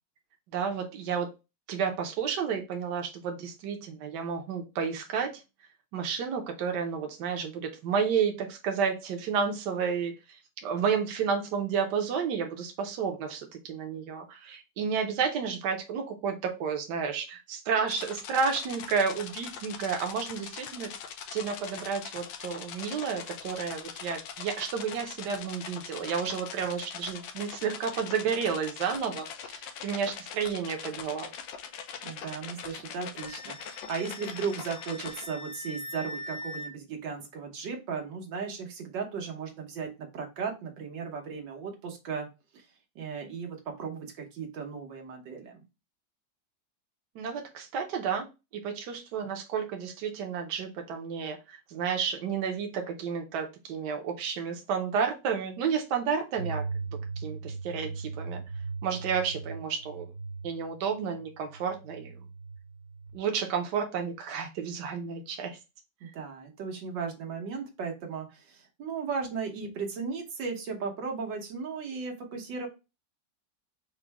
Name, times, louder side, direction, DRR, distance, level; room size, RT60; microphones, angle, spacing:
voice 1, 0.5-1.3 1.7-5.4 5.9-20.9 21.3-31.3 47.1-48.3 48.5-56.6 57.2-58.4 58.8-60.1 60.4-62.1 63.1-65.6, right 6 dB, 70° right, 4 dB, 1.3 m, -31 dB
sound 1, 17.9-35.3, left 7 dB, 90° left, 1.3 m, -42 dB
voice 2, 32.0-42.3 42.5-42.7 43.0-45.6 66.0-72.7, right 5 dB, 90° right, 2 dB, 1.8 m, -36 dB
Wind instrument woodwind instrument, 33.2-36.7, left 2 dB, 65° left, 0.9 m, -42 dB
sound 2, 56.3-63.2, right 4 dB, 50° right, 0.8 m, -39 dB
5.0 x 2.1 x 4.6 m, 0.26 s
omnidirectional pair, 1.9 m